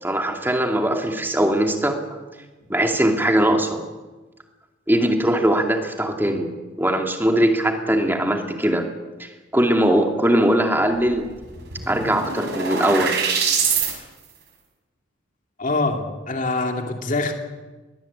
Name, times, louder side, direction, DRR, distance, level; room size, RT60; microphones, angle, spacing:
voice 1, 0.0-2.0 2.7-3.8 4.9-6.5 6.8-8.9 9.2-11.3 11.9-13.2, right 1 dB, 10° right, 3 dB, 2.4 m, -20 dB
sound 1, 11.1-11.2 11.4-13.9, right 6 dB, 55° right, 5.7 m, -24 dB
voice 2, 15.6-17.3, left 3 dB, 40° left, 3 dB, 2.6 m, -24 dB
22.0 x 19.0 x 8.7 m, 1.2 s
head